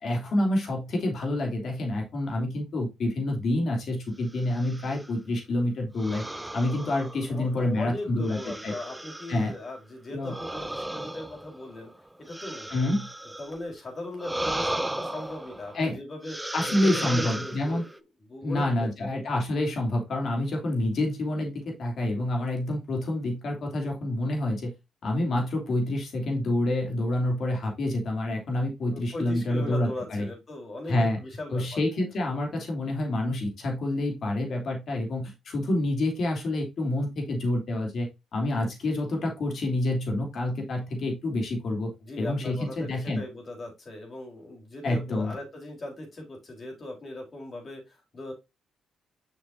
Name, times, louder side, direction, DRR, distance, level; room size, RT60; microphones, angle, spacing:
voice 1, 0.0-6.2 6.5-8.4 8.6-8.7 9.3-9.5 10.1-10.3 12.7-13.1 15.7-16.0 16.5-17.8 18.4-24.7 25.0-30.3 30.9-31.2 31.5-41.9 42.2-43.2 44.8-45.3, left 1 dB, 55° left, 1 dB, 2.9 m, -28 dB
sound 1, 4.4-5.1 6.0-7.6 8.2-9.5 10.2-13.6 14.2-15.8 16.2-18.0, right 1 dB, 10° right, 0.5 m, -35 dB
voice 2, 7.3-11.9 12.2-12.9 13.4-18.0 18.3-19.1 28.9-31.8 42.0-48.3, left 1 dB, 40° left, 0 dB, 4.0 m, -39 dB
6.7 x 6.2 x 2.7 m, 0.23 s
cardioid pair, 90°, 0 cm